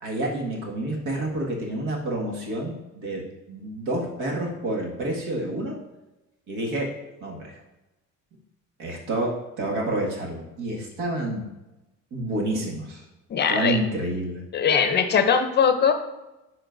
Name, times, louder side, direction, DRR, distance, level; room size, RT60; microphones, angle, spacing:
voice 1, 0.0-3.2 3.5-5.8 6.5-6.9 7.2-7.6 8.8-9.3 9.6-11.4 12.1-13.0 13.5-14.4, right 1 dB, 80° right, -1 dB, 1.8 m, -28 dB
voice 2, 13.3-13.8 14.5-15.9, left 6 dB, 35° left, 7 dB, 0.6 m, -20 dB
9.8 x 4.3 x 2.6 m, 0.99 s
cardioid pair, 150°, 30 cm